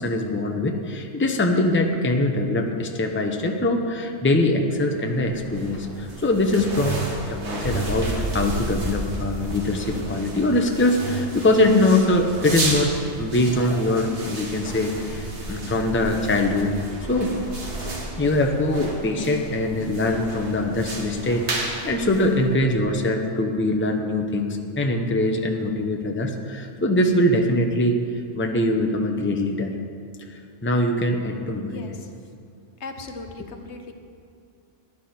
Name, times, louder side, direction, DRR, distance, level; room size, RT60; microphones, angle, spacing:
voice 1, 0.0-12.9 13.2-16.7 17.1-17.4 17.8-28.0 28.3-29.7 30.6-31.8, left 1 dB, 10° left, 3 dB, 0.8 m, -22 dB
sound 1, 5.0-22.9, right 2 dB, 65° right, 1.9 m, -32 dB
voice 2, 31.7-32.1 32.8-33.9, left 3 dB, 70° left, 5 dB, 1.2 m, -38 dB
14.5 x 11.0 x 4.4 m, 2.4 s
omnidirectional pair, 1.2 m